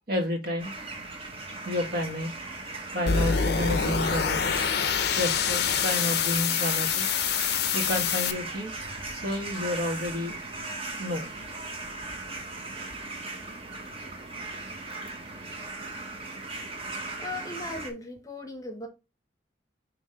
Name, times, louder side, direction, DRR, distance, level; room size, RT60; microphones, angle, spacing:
voice 1, 0.1-0.7 1.6-2.3 2.9-4.5 5.2-7.1 7.7-8.8 9.1-10.4 11.0-11.3, left 1 dB, 55° right, 1.6 m, -30 dB
sound 1, 0.6-17.9, right 3 dB, 30° right, 1.1 m, -38 dB
sound 2, 3.1-8.3, left 7 dB, 60° left, 0.6 m, -26 dB
voice 2, 17.2-18.9, left 2 dB, 20° left, 0.9 m, -37 dB
5.8 x 3.1 x 5.6 m
head